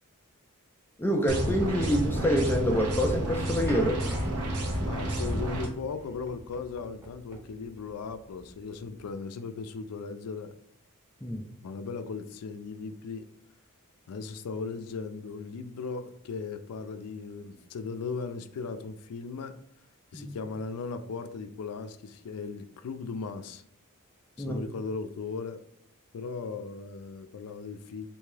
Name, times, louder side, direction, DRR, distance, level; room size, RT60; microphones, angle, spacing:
voice 1, 1.0-4.0 11.2-11.4 20.1-20.3 24.4-24.6, equal, 10° left, 2 dB, 0.3 m, -26 dB
sound 1, 1.3-5.7, right 1 dB, 80° right, 0.9 m, -30 dB
sound 2, 3.7-9.1, right 1 dB, 10° right, 0.7 m, -44 dB
voice 2, 4.8-10.5 11.6-13.3 14.1-19.6 20.1-23.6 24.4-25.6 26.1-28.1, left 4 dB, 80° left, 9 dB, 0.4 m, -37 dB
3.4 x 2.7 x 3.2 m, 0.68 s
head